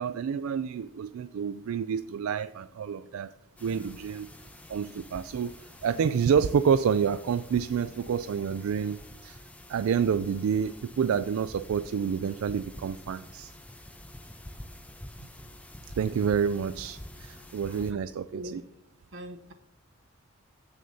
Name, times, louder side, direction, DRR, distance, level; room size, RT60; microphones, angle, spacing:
voice 1, 0.0-3.3 3.6-4.3 4.7-5.5 5.8-9.4 9.7-13.5 16.0-18.6, right 7 dB, 85° right, 13 dB, 0.3 m, -28 dB
sound 1, 3.6-17.9, left 1 dB, 5° left, 0.5 m, -47 dB
voice 2, 17.7-18.0 18.3-18.6 19.1-19.5, right 1 dB, 65° right, 7 dB, 0.9 m, -42 dB
15.5 x 6.4 x 2.8 m, 0.79 s
head